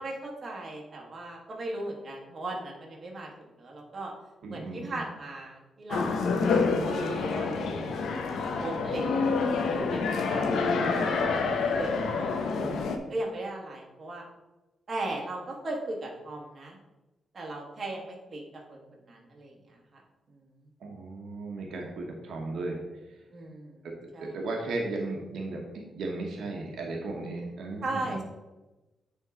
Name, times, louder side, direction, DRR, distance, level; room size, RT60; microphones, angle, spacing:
voice 1, 0.0-4.1 4.5-8.0 8.6-9.2 9.5-11.0 11.4-12.3 13.1-14.2 14.9-16.8 17.3-18.4 18.7-18.8 19.1-19.5 20.3-20.4 23.3-23.8 24.1-24.4 27.8-28.2, right 2 dB, 35° right, -1 dB, 1.3 m, -37 dB
voice 2, 4.4-5.0 11.8-12.8 20.8-22.8 24.3-28.2, right 2 dB, 75° right, 0 dB, 1.1 m, -36 dB
sound 1, 5.9-13.0, left 4 dB, 80° left, 0.7 m, -27 dB
9.1 x 3.7 x 3.7 m, 1.1 s
wide cardioid pair, 160°, 0 cm